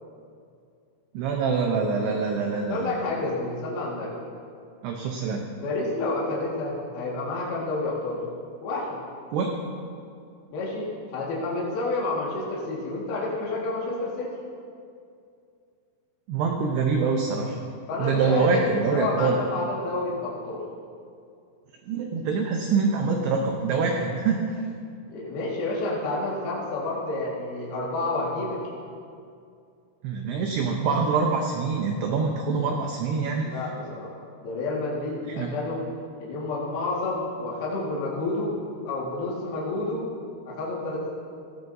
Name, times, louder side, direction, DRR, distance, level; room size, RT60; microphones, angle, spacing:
voice 1, 1.1-2.9 4.8-5.4 9.3-9.6 16.3-17.6 18.0-19.4 21.9-24.4 30.0-33.5 35.4-35.5, right 4 dB, 80° right, 2 dB, 2.5 m, -25 dB
voice 2, 2.5-4.1 5.5-8.2 8.6-9.0 10.5-14.3 17.9-18.6 18.9-20.6 25.1-28.6 33.4-34.1 34.4-35.9 36.2-38.6 38.8-40.0 40.5-41.1, left 2 dB, 60° left, -6 dB, 3.2 m, -29 dB
16.5 x 15.0 x 2.7 m, 2.4 s
omnidirectional pair, 5.7 m